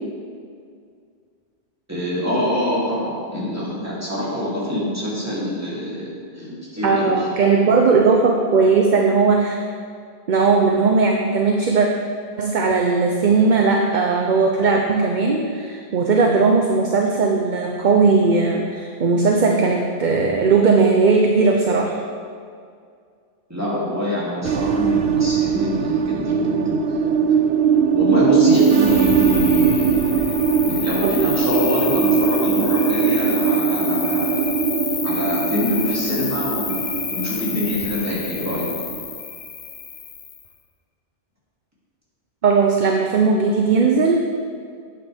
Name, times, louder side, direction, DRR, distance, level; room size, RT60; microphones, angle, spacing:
voice 1, 1.9-7.3 23.5-27.2 27.9-30.3 30.7-34.4 35.0-36.8 37.1-38.7, left 1 dB, 15° right, -8 dB, 2.9 m, -25 dB
voice 2, 6.8-9.6 10.3-11.9 12.4-22.0 31.0-31.3 42.4-44.1, right 4 dB, 50° right, 2 dB, 0.8 m, -18 dB
sound 1, 24.4-39.1, right 7 dB, 75° right, 0.9 m, -20 dB
Cricket, 28.5-40.5, left 6 dB, 70° left, 1.1 m, -29 dB
11.5 x 8.7 x 3.5 m, 2.2 s
omnidirectional pair, 1.1 m